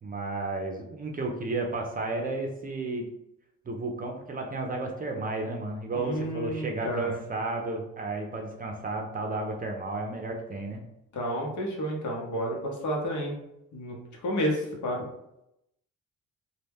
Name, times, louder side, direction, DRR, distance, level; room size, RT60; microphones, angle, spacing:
voice 1, 0.0-3.1 3.6-10.8, right 2 dB, 30° right, 2 dB, 0.5 m, -33 dB
voice 2, 5.9-7.2 11.1-13.4 13.7-15.1, equal, 70° left, 0 dB, 0.9 m, -31 dB
2.2 x 2.1 x 3.4 m, 0.83 s
cardioid pair, 90°, 30 cm